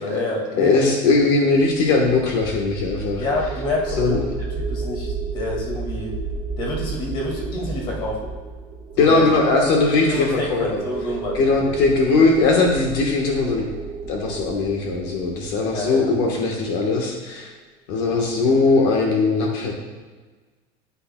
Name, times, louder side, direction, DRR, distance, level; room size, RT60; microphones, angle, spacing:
voice 1, 0.0-0.8 3.2-4.3 4.6-6.1 6.6-8.3 9.0-9.3 10.1-11.7 15.7-16.1, left 2 dB, 40° left, -1 dB, 2.0 m, -28 dB
voice 2, 0.5-3.2 4.0-4.2 9.0-10.8 11.3-13.7 14.0-17.5 17.9-19.7, left 3 dB, 60° left, 1 dB, 1.2 m, -19 dB
sound 1, 1.7-16.6, right 4 dB, 45° right, 1.3 m, -33 dB
9.6 x 8.4 x 2.2 m, 1.4 s
cardioid pair, 175°, 14 cm